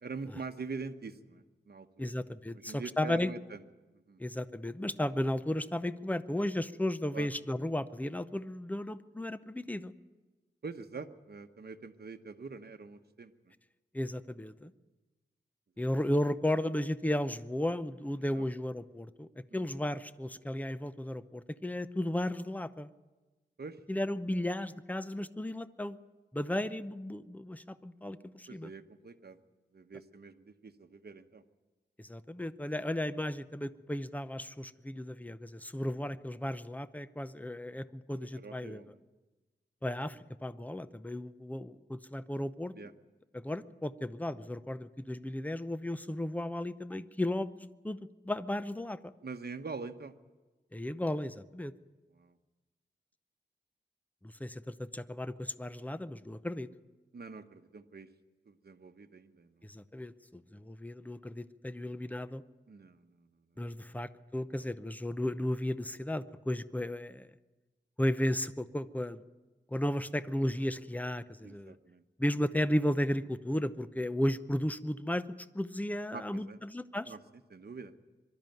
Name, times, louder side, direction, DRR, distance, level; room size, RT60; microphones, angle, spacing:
voice 1, 0.0-2.1 2.5-3.6 3.9-4.2 7.1-7.3 10.6-13.5 15.8-15.9 18.3-18.5 19.5-19.7 23.6-23.8 28.5-29.4 29.7-31.4 38.3-39.0 42.7-42.9 49.2-50.1 52.1-52.4 57.1-58.1 58.5-59.7 62.7-64.0 71.4-72.0 76.1-76.6 77.1-77.2 77.5-77.9, right 4 dB, 60° right, 7 dB, 1.1 m, -45 dB
voice 2, 2.0-3.3 4.2-9.9 13.9-14.7 15.8-22.9 23.9-26.0 26.3-28.7 32.0-38.9 39.8-42.7 43.3-48.0 48.3-49.1 50.7-51.7 54.2-56.7 59.6-62.4 63.6-67.3 68.0-69.2 69.7-71.8 72.2-75.2 75.5-77.1, left 1 dB, 10° left, 13 dB, 0.7 m, -34 dB
23.0 x 12.5 x 9.2 m, 1.2 s
wide cardioid pair, 100°, 19 cm